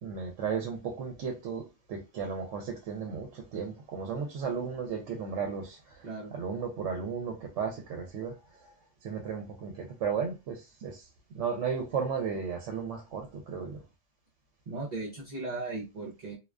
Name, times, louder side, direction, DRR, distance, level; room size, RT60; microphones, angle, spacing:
voice 1, 0.0-6.1 6.3-8.3 8.6-8.7 9.0-11.0 11.3-13.8, right 6 dB, 80° right, 0.9 m, -34 dB
voice 2, 14.7-16.3, right 3 dB, 45° right, 0.6 m, -37 dB
2.4 x 2.2 x 2.3 m
omnidirectional pair, 1.2 m